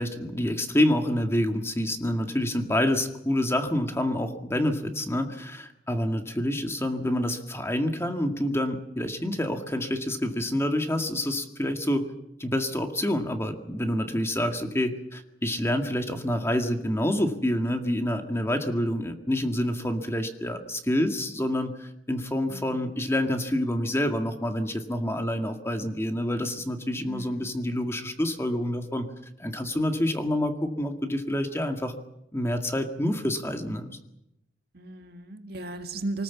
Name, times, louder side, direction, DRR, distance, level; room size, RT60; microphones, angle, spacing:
voice 1, 0.0-12.1 12.4-29.1 29.4-31.9 32.3-33.9, left 1 dB, 15° left, 5 dB, 2.0 m, -27 dB
voice 2, 22.5-22.9 27.1-27.5 34.7-36.2, right 2 dB, 60° right, 6 dB, 2.0 m, -36 dB
24.5 x 20.0 x 7.3 m, 0.83 s
head